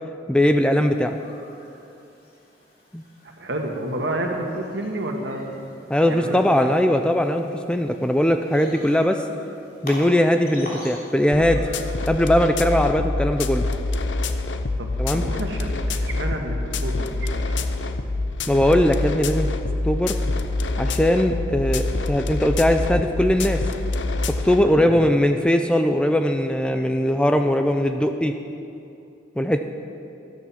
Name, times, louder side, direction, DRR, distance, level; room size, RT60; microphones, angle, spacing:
voice 1, 0.3-1.2 2.9-3.0 5.9-9.2 9.8-11.7 12.1-13.6 15.0-15.2 18.5-19.5 19.8-20.2 20.8-23.6 24.3-28.3 29.4-29.6, left 1 dB, 5° left, 6 dB, 0.4 m, -20 dB
sound 1, 0.6-12.2, left 1 dB, 55° left, 3.3 m, -44 dB
voice 2, 3.4-5.5 6.1-6.7 14.8-17.4 24.6-25.0, right 1 dB, 65° right, 2 dB, 1.6 m, -30 dB
sound 2, 11.3-24.6, left 2 dB, 75° left, 0.7 m, -26 dB
13.0 x 12.0 x 5.8 m, 2.7 s
head